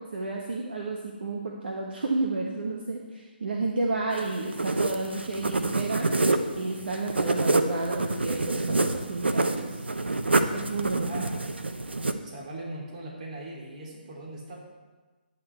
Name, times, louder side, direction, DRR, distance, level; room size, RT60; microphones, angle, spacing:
voice 1, 0.1-6.2 6.5-9.7 10.5-11.3, right 3 dB, 65° right, 0 dB, 1.3 m, -31 dB
sound 1, 4.1-12.1, right 2 dB, 85° right, 0.8 m, -27 dB
voice 2, 11.0-11.4 12.2-14.7, right 1 dB, 45° right, -2 dB, 3.2 m, -40 dB
11.0 x 8.7 x 4.5 m, 1.3 s
figure-of-eight pair, 145°, 6 cm